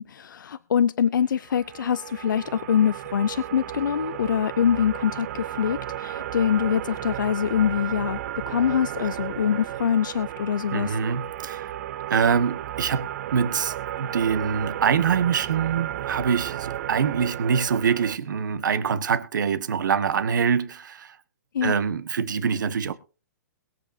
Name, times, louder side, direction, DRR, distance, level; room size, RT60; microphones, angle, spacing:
voice 1, 0.0-8.2 8.5-11.0 21.5-21.7, left 8 dB, 90° left, 0.5 m, -24 dB
sound 1, 1.4-18.2, right 12 dB, 50° right, 0.7 m, -34 dB
voice 2, 10.7-11.7 12.1-21.2 21.6-22.9, right 6 dB, 80° right, 1.4 m, -24 dB
22.0 x 8.1 x 2.7 m
hypercardioid pair, 145°, 10 cm